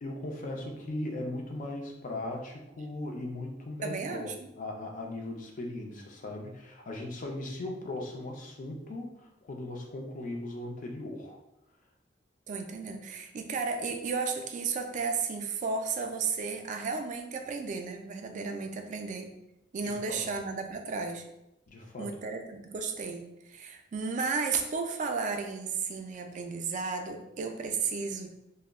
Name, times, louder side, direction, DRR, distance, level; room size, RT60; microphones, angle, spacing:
voice 1, 0.0-11.4 19.8-20.3 21.7-22.1, left 1 dB, 45° left, 1 dB, 0.5 m, -38 dB
voice 2, 3.8-4.3 12.5-19.3 19.7-21.2 22.0-23.2 23.5-28.3, right 5 dB, 40° right, 4 dB, 0.3 m, -33 dB
2.2 x 2.0 x 3.4 m, 0.87 s
head